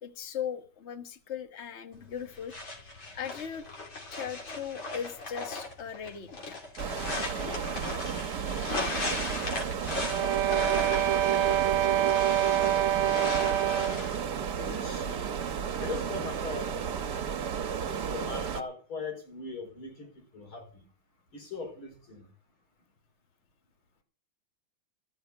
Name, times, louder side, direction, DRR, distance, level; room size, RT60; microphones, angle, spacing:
voice 1, 0.0-2.5 3.1-3.7 4.1-6.6, left 8 dB, 35° left, 1.3 m, -38 dB
sound 1, 1.9-14.2, left 2 dB, 65° left, 3.7 m, -37 dB
sound 2, 6.8-18.6, right 7 dB, 55° right, 1.4 m, -33 dB
sound 3, 10.0-14.1, right 12 dB, 80° right, 1.6 m, -26 dB
voice 2, 14.6-15.3 15.8-16.9 17.9-20.8 21.3-22.3, left 3 dB, 80° left, 5.4 m, -40 dB
14.0 x 6.4 x 9.0 m
omnidirectional pair, 2.3 m